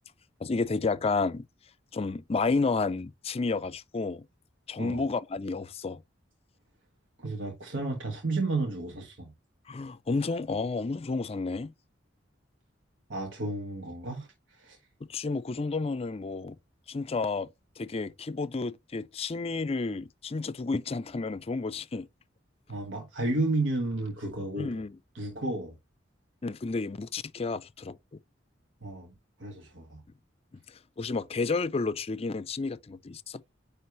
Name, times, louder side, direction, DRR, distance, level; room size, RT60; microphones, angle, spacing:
voice 1, 0.4-1.4 1.9-4.3 4.7-6.0 9.7-11.7 15.1-16.6 16.9-17.5 17.8-22.1 24.6-24.9 26.4-28.0 31.0-33.4, left 3 dB, 35° left, 0.4 m, -31 dB
voice 2, 7.2-9.3 13.1-14.8 22.7-24.7 25.1-25.8 28.8-29.1 29.4-30.0, right 2 dB, 85° right, 1.4 m, -32 dB
9.3 x 3.3 x 3.1 m
head